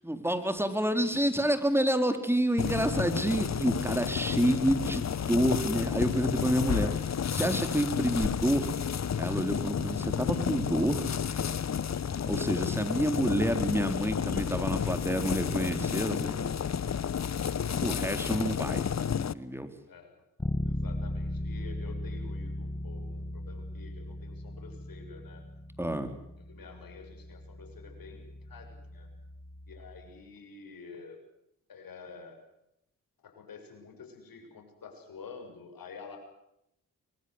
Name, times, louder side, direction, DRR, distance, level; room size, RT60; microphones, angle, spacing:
voice 1, 0.0-6.9 7.3-8.7 9.2-11.1 12.3-16.5 17.8-19.7 25.8-26.1, right 1 dB, 5° right, 8 dB, 4.1 m, -28 dB
sound 1, 2.6-19.3, left 7 dB, 45° left, 1.1 m, -31 dB
Bass guitar, 20.4-30.2, left 1 dB, 15° left, 1.5 m, -38 dB
voice 2, 20.6-25.4 26.5-29.1 29.7-31.2 31.7-32.4 33.2-36.2, left 5 dB, 65° left, 3 dB, 7.0 m, -49 dB
24.0 x 21.5 x 8.1 m, 0.83 s
supercardioid pair, 45°, 38 cm